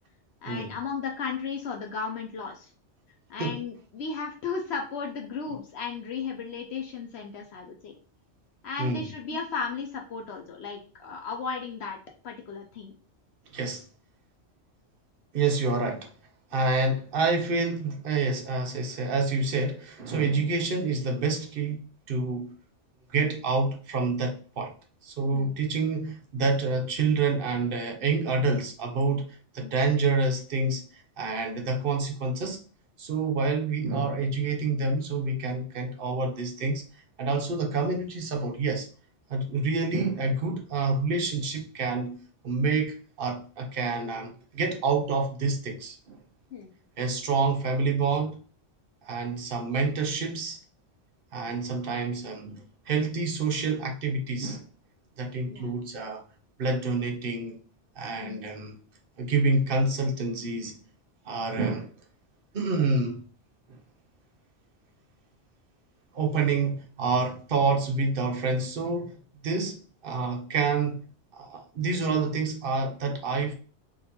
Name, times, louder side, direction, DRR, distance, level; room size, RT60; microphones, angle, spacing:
voice 1, 0.4-2.7 3.3-7.9 8.6-12.0 12.2-13.0 16.5-16.7 20.2-20.5 25.3-25.6 46.5-46.7 55.5-55.7 58.2-58.4, left 5 dB, 70° left, 0.8 m, -35 dB
voice 2, 13.5-13.8 15.3-16.1 16.5-22.5 23.1-24.7 25.0-32.6 33.0-36.8 37.2-38.9 39.3-42.2 42.4-46.2 47.0-48.4 49.0-50.6 51.3-54.7 55.2-56.2 56.6-57.6 58.0-58.8 59.2-60.8 61.3-61.9 62.5-63.2 63.7-63.8 66.1-71.0 71.3-73.5, right 3 dB, 55° right, 0.8 m, -28 dB
3.8 x 2.5 x 2.8 m
omnidirectional pair, 1.2 m